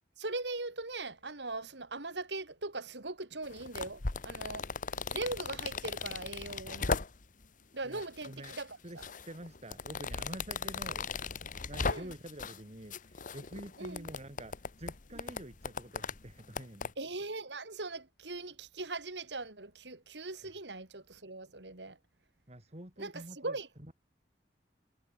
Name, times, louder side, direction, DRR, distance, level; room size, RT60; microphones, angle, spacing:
voice 1, 0.2-4.7 5.1-7.0 7.7-8.7 11.9-12.1 13.8-14.1 17.0-22.0 23.0-23.7, right 3 dB, 80° right, 3.4 m, -40 dB
sound 1, 3.4-7.4 7.9-8.6 9.0-12.6 12.9-16.9, left 4 dB, 50° left, 1.1 m, -38 dB
voice 2, 7.8-8.6 8.8-11.1 11.7-16.9 20.4-20.5 22.5-23.9, right 1 dB, 40° right, 5.0 m, -48 dB
head